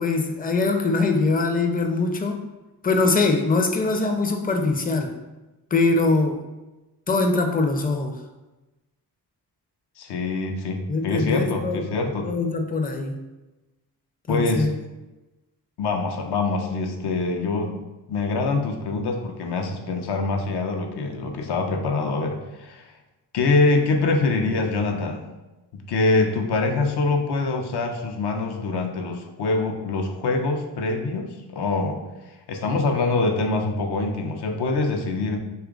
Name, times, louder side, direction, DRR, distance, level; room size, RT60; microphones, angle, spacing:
voice 1, 0.0-2.4 2.8-5.1 5.7-6.4 7.1-8.2 10.9-11.8 12.2-13.2 14.3-14.7, left 3 dB, 20° left, 4 dB, 0.5 m, -22 dB
voice 2, 10.0-12.3 14.3-14.7 15.8-17.8 18.1-22.8 23.3-25.2 25.7-32.0 32.5-35.4, left 3 dB, 65° left, 4 dB, 0.6 m, -24 dB
3.0 x 2.3 x 3.7 m, 1.1 s
cardioid pair, 50°, 43 cm